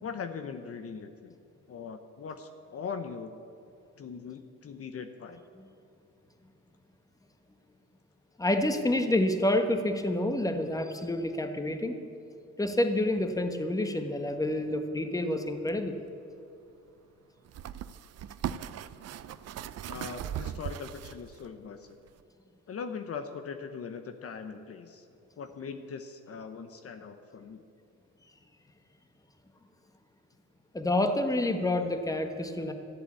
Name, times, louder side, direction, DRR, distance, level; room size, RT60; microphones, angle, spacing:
voice 1, 0.0-1.3 1.7-3.4 4.0-5.4 19.9-22.0 22.7-25.1 25.4-27.6, left 5 dB, 50° left, 7 dB, 0.9 m, -40 dB
voice 2, 8.4-11.9 12.6-15.9 30.7-32.7, left 1 dB, 10° left, 7 dB, 1.2 m, -28 dB
sound 1, 15.7-15.8 17.4-21.5 22.1-22.2, right 10 dB, 55° right, 0.6 m, -38 dB
13.5 x 8.1 x 8.3 m, 2.6 s
cardioid pair, 90°, 30 cm